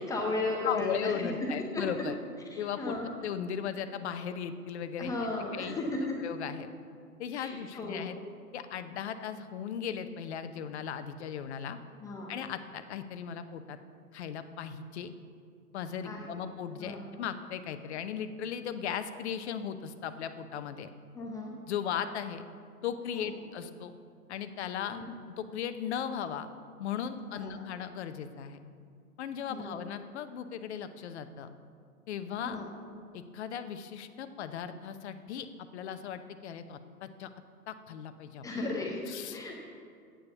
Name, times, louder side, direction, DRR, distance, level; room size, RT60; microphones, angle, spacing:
voice 1, 0.0-1.3 1.7-1.8 2.5-3.1 5.0-6.2 7.3-8.0 12.0-12.3 16.0-16.2 16.8-17.0 21.1-21.5 23.1-23.3 24.9-25.1 27.3-27.5 29.5-29.7 32.4-32.7 38.4-39.0 39.3-39.5, left 2 dB, 5° left, -1 dB, 0.5 m, -35 dB
voice 2, 0.6-2.1 2.6-2.9 3.2-5.2 5.5-5.8 6.2-6.7 7.2-8.2 8.5-11.8 12.3-13.8 14.1-15.1 15.7-20.9 21.7-22.4 22.8-23.9 24.3-26.5 26.8-28.6 29.2-31.5 32.1-32.6 33.1-35.5 35.7-37.3 37.7-38.4 39.1-39.5, left 8 dB, 45° left, 10 dB, 0.8 m, -37 dB
9.5 x 8.9 x 6.8 m, 2.3 s
figure-of-eight pair, 115°, 47 cm